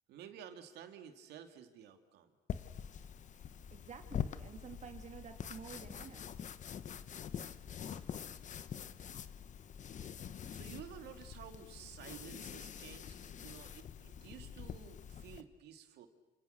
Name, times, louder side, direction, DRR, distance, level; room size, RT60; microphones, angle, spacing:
voice 1, 0.1-2.3 8.0-8.1 10.5-16.1, right 9 dB, 80° right, 7 dB, 2.5 m, -52 dB
sound 1, 2.5-15.4, left 8 dB, 45° left, 1.2 m, -45 dB
voice 2, 3.7-6.4, right 7 dB, 45° right, 5 dB, 3.0 m, -51 dB
28.5 x 26.5 x 6.7 m, 1.1 s
cardioid pair, 110°, 17 cm